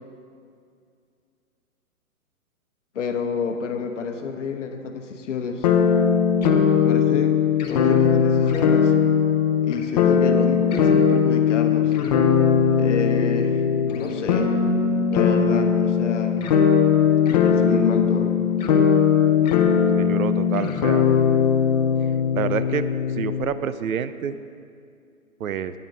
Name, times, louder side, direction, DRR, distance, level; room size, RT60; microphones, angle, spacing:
voice 1, 2.9-5.7 6.7-7.3 7.7-8.9 9.6-11.9 12.7-13.6 13.9-14.5 15.1-16.4 17.3-18.4, left 5 dB, 55° left, 6 dB, 1.0 m, -29 dB
sound 1, 5.6-23.4, left 7 dB, 30° left, 0.7 m, -19 dB
voice 2, 20.0-21.1 22.3-22.9 23.2-24.4 25.4-25.7, right 8 dB, 70° right, 13 dB, 0.6 m, -27 dB
9.3 x 8.6 x 4.6 m, 2.3 s
figure-of-eight pair, 130°, 43 cm